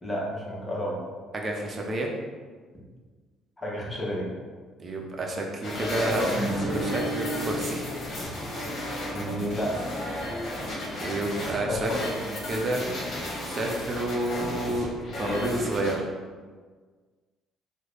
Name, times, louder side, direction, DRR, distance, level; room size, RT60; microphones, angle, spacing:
voice 1, 0.0-1.0 3.6-4.3 6.0-6.3 9.1-9.7 11.6-12.0, left 1 dB, 20° left, -4 dB, 1.1 m, -30 dB
voice 2, 1.3-2.1 4.8-6.2 6.7-7.8 11.0-11.9 12.2-12.8 13.4-14.9 15.1-16.1, right 2 dB, 40° right, 1 dB, 0.6 m, -30 dB
sound 1, 5.6-15.9, left 1 dB, 55° left, 1.1 m, -34 dB
Guitar, 6.3-11.4, right 1 dB, 85° right, 0.8 m, -36 dB
3.2 x 2.1 x 3.8 m, 1.5 s
hypercardioid pair, 50°, 0 cm